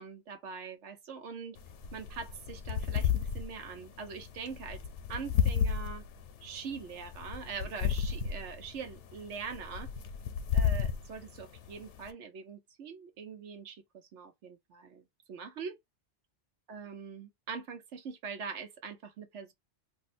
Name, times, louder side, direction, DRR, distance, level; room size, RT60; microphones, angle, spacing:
voice 1, 0.0-1.6 1.9-4.8 5.1-6.0 6.4-9.9 10.5-15.8 16.7-19.5, right 5 dB, 90° right, 1.1 m, -43 dB
sound 1, 1.6-12.1, left 7 dB, 90° left, 0.9 m, -33 dB
2.7 x 2.2 x 4.1 m
omnidirectional pair, 1.2 m